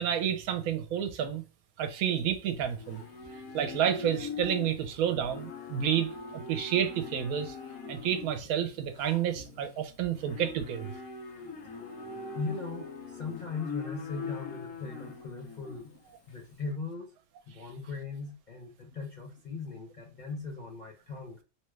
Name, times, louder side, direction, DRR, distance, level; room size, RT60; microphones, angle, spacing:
voice 1, 0.0-1.4 1.8-3.0 3.5-7.6 7.9-10.9, right 9 dB, 85° right, 1.0 m, -30 dB
Livestock farm animals working animals, 1.8-16.5, left 4 dB, 80° left, 1.1 m, -42 dB
voice 2, 12.3-15.9 16.3-17.1 17.5-21.4, left 4 dB, 50° left, 0.5 m, -39 dB
3.0 x 2.2 x 3.1 m
omnidirectional pair, 1.5 m